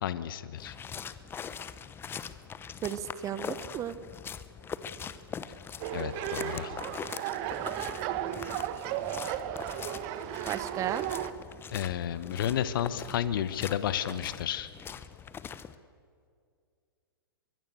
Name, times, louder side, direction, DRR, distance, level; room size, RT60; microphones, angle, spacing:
voice 1, 0.0-0.8 5.9-6.8 11.7-14.7, left 10 dB, 60° left, 14 dB, 1.2 m, -32 dB
sound 1, 0.6-15.7, left 7 dB, 15° left, 1.0 m, -42 dB
voice 2, 2.8-4.0 10.5-11.0, right 10 dB, 25° right, 14 dB, 1.2 m, -34 dB
sound 2, 5.8-11.3, right 12 dB, 40° right, 1.5 m, -35 dB
23.5 x 22.5 x 6.8 m, 2.3 s
hypercardioid pair, 110°, 13 cm